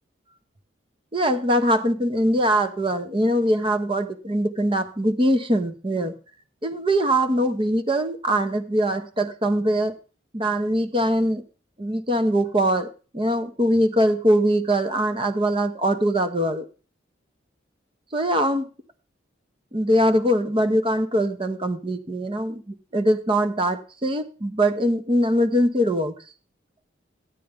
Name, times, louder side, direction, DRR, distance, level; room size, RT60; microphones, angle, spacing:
voice 1, 1.1-6.1 6.6-9.9 10.3-11.4 11.8-16.7 18.1-18.7 19.7-22.6 22.9-26.1, equal, 25° right, 0.8 m, -22 dB
13.5 x 9.2 x 3.5 m
head